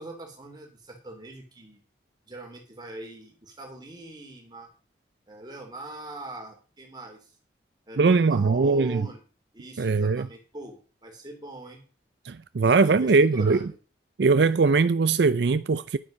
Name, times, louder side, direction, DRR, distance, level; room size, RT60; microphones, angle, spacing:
voice 1, 0.0-1.8 2.3-4.7 5.3-7.3 7.9-9.2 9.5-11.8 12.8-13.8, right 1 dB, 25° right, 3.3 m, -42 dB
voice 2, 8.0-9.0 9.8-10.3 12.3-13.7 14.2-16.0, right 4 dB, 65° right, 0.5 m, -21 dB
11.0 x 9.1 x 5.3 m
head